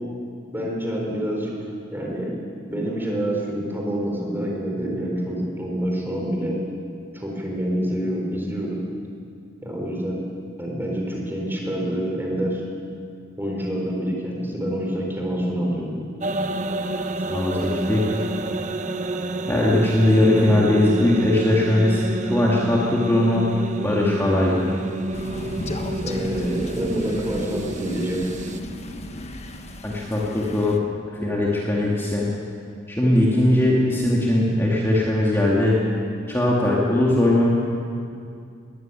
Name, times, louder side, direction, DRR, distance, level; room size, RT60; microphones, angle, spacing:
voice 1, 0.5-1.5 1.9-2.3 2.7-6.6 7.1-8.8 9.6-10.2 10.6-12.6 13.4-15.9 26.0-28.3, equal, 10° right, -1 dB, 4.2 m, -27 dB
sound 1, 16.2-28.6, right 1 dB, 40° right, 0.9 m, -29 dB
voice 2, 17.3-18.0 19.5-23.5 23.8-24.7 29.8-30.8 31.1-32.3 32.9-35.8 36.3-37.7, left 1 dB, 10° left, -5 dB, 2.4 m, -20 dB
Crow, 25.1-30.8, left 1 dB, 35° left, 1.4 m, -35 dB
21.0 x 14.5 x 9.2 m, 2.4 s
head